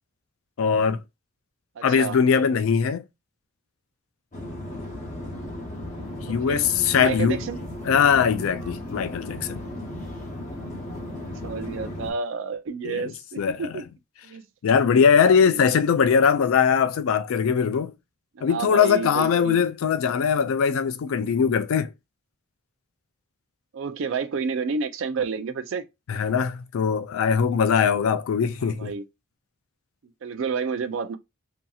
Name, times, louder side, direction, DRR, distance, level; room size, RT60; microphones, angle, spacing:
voice 1, 0.6-1.0 1.8-3.0 6.3-7.4 7.8-9.6 12.8-13.7 14.6-17.9 18.4-21.9 26.1-28.9, left 6 dB, 80° left, 0.3 m, -21 dB
voice 2, 1.8-2.2 6.3-6.6 7.0-7.6 10.5-13.8 14.2-14.4 15.3-15.7 18.4-19.7 23.7-25.8 28.6-29.1 30.2-31.2, right 5 dB, 65° right, 0.4 m, -30 dB
sound 1, 4.3-12.1, left 1 dB, 35° left, 0.8 m, -35 dB
2.7 x 2.7 x 2.3 m
head